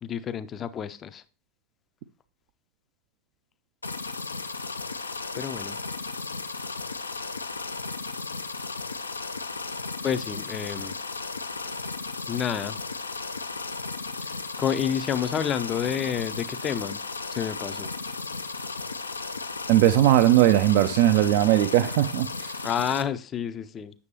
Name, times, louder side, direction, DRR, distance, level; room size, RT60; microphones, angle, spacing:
voice 1, 0.0-1.2 5.3-5.8 10.0-11.0 12.3-12.8 14.2-17.0 17.3-17.9 22.6-23.9, left 8 dB, 25° left, 0.5 m, -29 dB
sound 1, 3.8-23.0, left 4 dB, 80° left, 0.5 m, -35 dB
voice 2, 19.7-22.6, right 13 dB, 50° right, 0.4 m, -19 dB
8.4 x 6.5 x 2.8 m
figure-of-eight pair, 90°, 0 cm